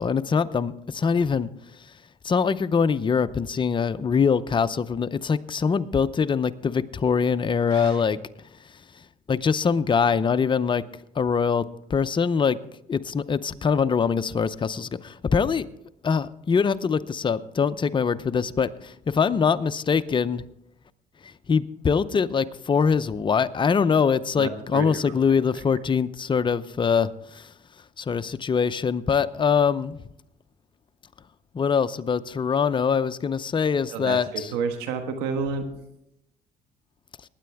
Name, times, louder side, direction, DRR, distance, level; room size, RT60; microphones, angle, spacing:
voice 1, 0.0-1.5 2.2-8.2 9.3-10.8 11.2-12.6 12.9-15.7 16.0-20.4 21.2-27.5 28.0-30.0 31.5-34.5, left 6 dB, 30° left, 12 dB, 0.6 m, -23 dB
voice 2, 24.4-25.2 33.9-35.7, right 5 dB, 90° right, 6 dB, 1.4 m, -30 dB
20.5 x 9.5 x 3.5 m, 0.81 s
cardioid pair, 90°, 16 cm